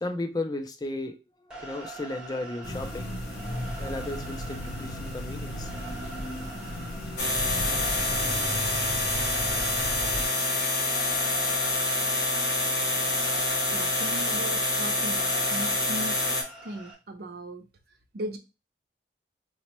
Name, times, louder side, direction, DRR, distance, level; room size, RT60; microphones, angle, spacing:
voice 1, 0.0-3.1 3.8-5.7, left 2 dB, 20° left, 0.3 m, -35 dB
sound 1, 1.5-16.9, right 2 dB, 5° right, 0.7 m, -44 dB
sound 2, 2.6-10.2, equal, 60° left, 0.7 m, -35 dB
sound 3, 7.2-16.4, left 2 dB, 90° left, 0.9 m, -27 dB
voice 2, 13.7-16.2 16.6-17.6 18.1-18.4, right 1 dB, 60° right, 0.5 m, -37 dB
4.1 x 2.1 x 2.9 m
head